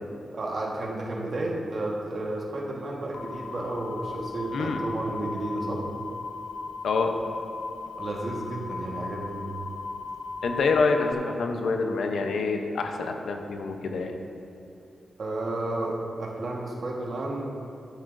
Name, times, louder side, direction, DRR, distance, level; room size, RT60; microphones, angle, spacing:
voice 1, 0.3-5.8 8.0-9.4 15.2-17.5, right 2 dB, 55° right, -2 dB, 1.5 m, -32 dB
sound 1, 3.1-11.1, left 4 dB, 55° left, 0.4 m, -37 dB
voice 2, 4.5-4.8 6.8-7.1 10.4-14.2, left 4 dB, 80° left, 4 dB, 0.8 m, -26 dB
11.5 x 9.9 x 2.6 m, 2.5 s
cardioid pair, 90°, 0 cm